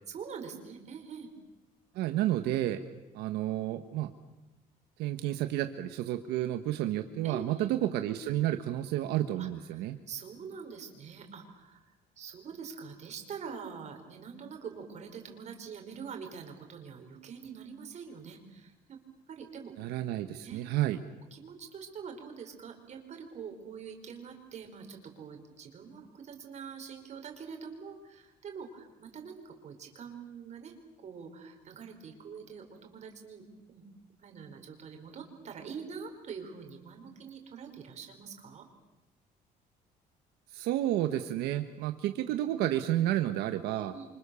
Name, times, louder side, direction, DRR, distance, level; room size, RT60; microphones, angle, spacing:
voice 1, 0.1-1.3 7.2-7.7 9.4-11.8 12.2-19.0 19.3-19.7 20.4-20.6 21.3-30.7 31.0-33.8 34.2-38.7 43.9-44.1, right 6 dB, 45° right, 4 dB, 5.1 m, -45 dB
voice 2, 1.9-2.8 3.1-4.1 5.0-10.0 19.8-21.0 40.5-43.9, right 13 dB, 90° right, 8 dB, 1.4 m, -31 dB
29.0 x 25.5 x 7.1 m, 1.0 s
cardioid pair, 130°, 16 cm